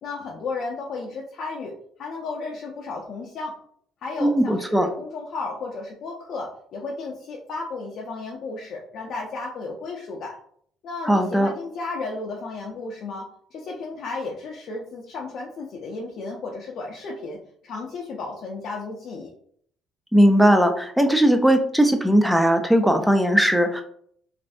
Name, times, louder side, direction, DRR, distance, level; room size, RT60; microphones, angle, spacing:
voice 1, 0.0-1.7 2.0-3.5 4.0-10.4 10.8-17.4 17.6-19.3, left 3 dB, 60° left, -2 dB, 0.5 m, -33 dB
voice 2, 4.2-4.9 11.0-11.5 20.1-23.8, equal, 5° right, 6 dB, 0.5 m, -18 dB
3.2 x 2.6 x 2.6 m, 0.63 s
supercardioid pair, 80°, 0 cm